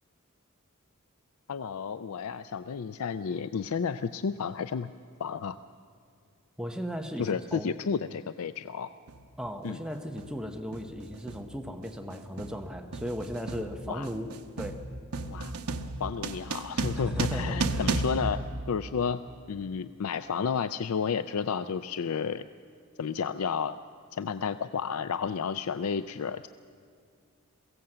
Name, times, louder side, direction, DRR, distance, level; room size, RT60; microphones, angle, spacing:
voice 1, 1.5-4.9 5.2-5.6 7.2-8.9 9.6-9.8 13.9-14.1 15.3-15.6 16.0-19.2 19.5-22.5 23.0-23.8 24.1-26.5, left 6 dB, 75° left, 12 dB, 0.4 m, -32 dB
voice 2, 6.6-7.8 9.4-14.8 17.0-17.9, equal, 5° right, 4 dB, 0.9 m, -37 dB
Dark Drumbeat, 9.1-9.3 10.2-10.4 10.7-19.3, right 2 dB, 85° right, 1.0 m, -34 dB
22.0 x 16.0 x 7.7 m, 2.2 s
head